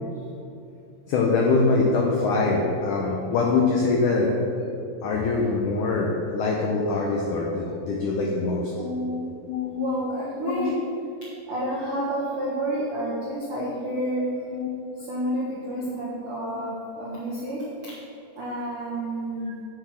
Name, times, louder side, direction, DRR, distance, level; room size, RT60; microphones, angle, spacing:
voice 1, 1.1-4.3 5.0-8.7 9.5-9.9 10.4-10.7 14.5-14.9 15.8-16.0, left 3 dB, 80° left, -1 dB, 1.8 m, -24 dB
voice 2, 8.8-9.2 9.8-10.8 11.5-14.3 15.0-17.6 18.4-19.5, right 1 dB, 70° right, -6 dB, 1.3 m, -29 dB
7.9 x 6.9 x 6.1 m, 2.8 s
omnidirectional pair, 4.6 m